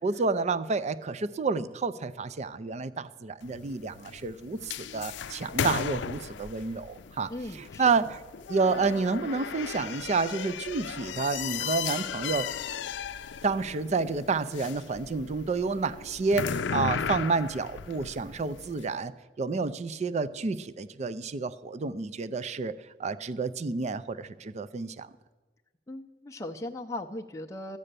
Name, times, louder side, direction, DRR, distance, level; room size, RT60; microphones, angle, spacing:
voice 1, 0.0-8.2 8.5-12.5 13.4-19.1 19.4-25.1, right 4 dB, 40° right, 14 dB, 0.4 m, -30 dB
sound 1, 3.4-18.8, left 7 dB, 80° left, 0.4 m, -36 dB
voice 2, 7.3-7.8 25.9-27.8, left 1 dB, 15° left, 1 dB, 0.5 m, -38 dB
13.0 x 8.8 x 6.7 m, 1.3 s
head